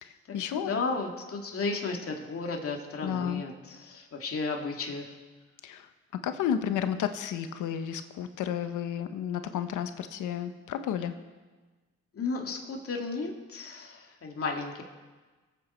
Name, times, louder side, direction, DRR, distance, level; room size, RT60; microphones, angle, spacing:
voice 1, 0.0-0.7 3.0-3.4 5.6-5.9 6.2-11.1, left 9 dB, 80° left, 9 dB, 1.1 m, -32 dB
voice 2, 0.7-3.5 3.8-5.1 12.2-14.8, left 4 dB, 50° left, 1 dB, 2.4 m, -33 dB
23.5 x 8.5 x 4.5 m, 1.3 s
cardioid pair, 90°, 30 cm